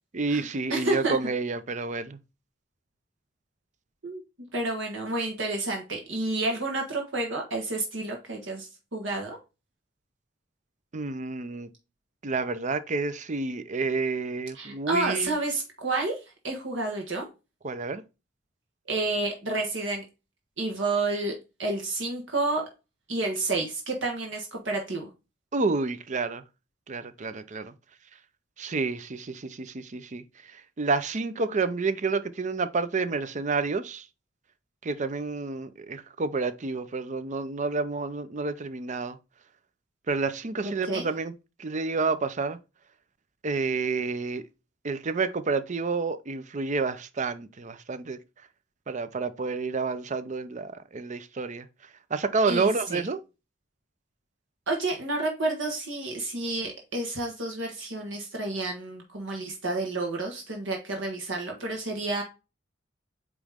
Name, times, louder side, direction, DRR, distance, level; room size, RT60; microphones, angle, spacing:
voice 1, 0.1-2.2 10.9-11.7 12.2-15.3 17.6-18.0 25.5-26.4 26.9-27.7 28.6-30.2 30.8-34.0 34.8-39.2 40.1-41.3 41.6-42.6 43.4-44.4 44.8-48.2 48.9-51.7 52.1-53.2, right 4 dB, 40° right, 0.6 m, -29 dB
voice 2, 0.7-1.2 4.0-4.2 4.5-9.4 14.5-17.3 18.9-20.0 20.6-22.6 23.1-25.1 40.6-41.1 52.5-53.1 54.7-62.2, right 2 dB, 70° right, 1.5 m, -30 dB
8.6 x 3.1 x 3.5 m
head